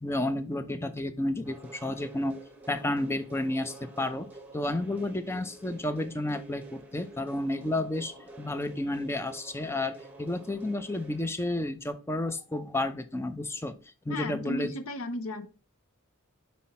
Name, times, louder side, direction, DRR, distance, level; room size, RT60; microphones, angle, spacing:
voice 1, 0.0-2.4 2.7-4.3 4.5-13.8 14.1-14.7, left 1 dB, 10° left, 11 dB, 0.5 m, -31 dB
sound 1, 1.4-11.2, right 2 dB, 10° right, 1.2 m, -49 dB
voice 2, 14.1-15.5, left 1 dB, 70° left, 9 dB, 0.8 m, -34 dB
5.8 x 4.2 x 4.1 m, 0.34 s
head